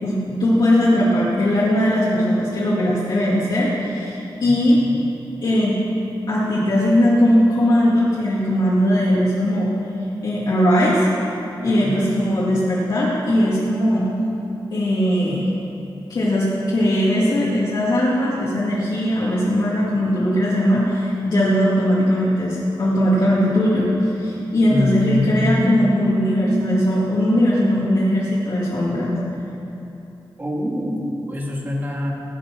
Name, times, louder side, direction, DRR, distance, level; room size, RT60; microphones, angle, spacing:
voice 1, 0.0-4.8 5.4-5.8 6.3-9.7 10.2-11.1 11.6-14.1 14.7-15.5 16.1-29.1, equal, 60° left, -8 dB, 2.4 m, -19 dB
voice 2, 4.4-4.9 11.8-12.1 24.7-25.9 26.4-26.8 30.4-32.1, equal, 25° right, -1 dB, 2.1 m, -24 dB
17.5 x 8.5 x 6.1 m, 2.9 s
wide cardioid pair, 150°, 8 cm